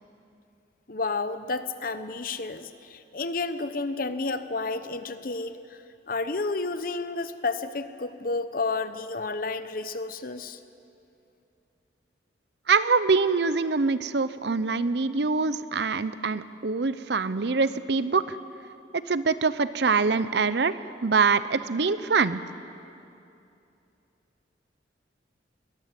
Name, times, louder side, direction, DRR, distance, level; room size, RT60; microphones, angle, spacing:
voice 1, 0.9-10.6, left 3 dB, 45° left, 11 dB, 0.8 m, -31 dB
voice 2, 12.7-18.4 18.9-22.4, right 4 dB, 60° right, 14 dB, 0.7 m, -24 dB
22.5 x 19.0 x 7.6 m, 2.7 s
head